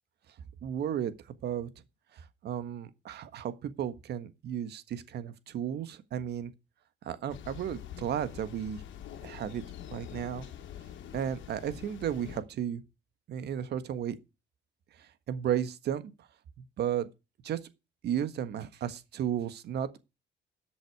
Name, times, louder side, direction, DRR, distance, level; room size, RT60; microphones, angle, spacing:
voice 1, 0.6-1.1 1.4-1.7 2.1-6.5 7.0-8.8 9.2-9.6 9.9-10.5 11.1-12.8 13.3-14.1 14.9-16.3 16.6-17.1 17.4-17.6 18.0-20.1, right 9 dB, 55° right, 1.5 m, -34 dB
Thunder, 7.3-12.4, left 10 dB, 70° left, 2.5 m, -45 dB
13.5 x 8.1 x 4.7 m
cardioid pair, 170°, 20 cm